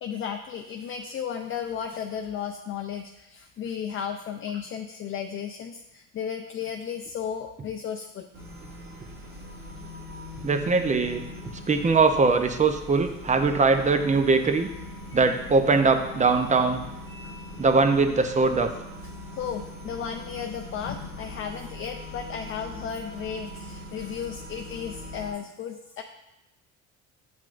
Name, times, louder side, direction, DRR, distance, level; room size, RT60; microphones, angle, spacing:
voice 1, 0.0-8.3 15.1-15.3 17.1-17.5 19.3-26.0, left 7 dB, 40° left, 4 dB, 0.5 m, -34 dB
sound 1, 8.3-25.3, left 2 dB, 65° right, 1.9 m, -41 dB
voice 2, 10.4-11.2 11.7-14.7 15.1-16.8 17.6-18.7, right 4 dB, 25° right, 8 dB, 0.5 m, -21 dB
7.7 x 5.6 x 2.5 m, 0.92 s
supercardioid pair, 85°, 32 cm